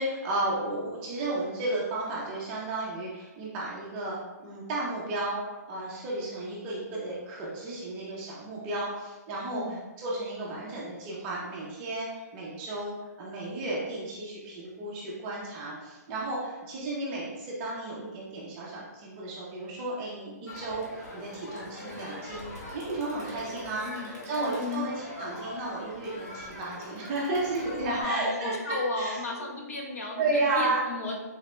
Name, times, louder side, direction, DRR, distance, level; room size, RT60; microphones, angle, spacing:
voice 1, 0.0-9.6 10.0-20.9 21.1-29.2 30.2-30.8, right 2 dB, 15° right, -5 dB, 0.4 m, -33 dB
Crowd, 20.5-28.0, left 1 dB, 70° left, 1.2 m, -42 dB
voice 2, 24.4-25.0 27.8-31.2, left 3 dB, 55° left, -1 dB, 0.7 m, -34 dB
3.9 x 2.1 x 2.9 m, 1.2 s
hypercardioid pair, 170°, 9 cm